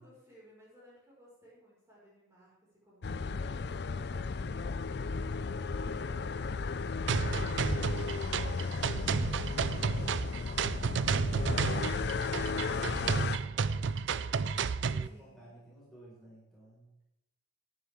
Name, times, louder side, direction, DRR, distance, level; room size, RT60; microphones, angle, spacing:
voice 1, 0.0-4.3 7.1-9.8 15.0-15.6, equal, 15° right, -7 dB, 5.3 m, -58 dB
sound 1, 3.0-13.4, left 4 dB, 55° left, 0.5 m, -35 dB
voice 2, 4.9-6.4 7.0-7.5 10.3-14.3 14.8-16.9, right 1 dB, ahead, -8 dB, 5.1 m, -55 dB
sound 2, 7.1-15.1, right 5 dB, 70° right, 0.4 m, -32 dB
15.5 x 10.5 x 3.7 m, 0.88 s
head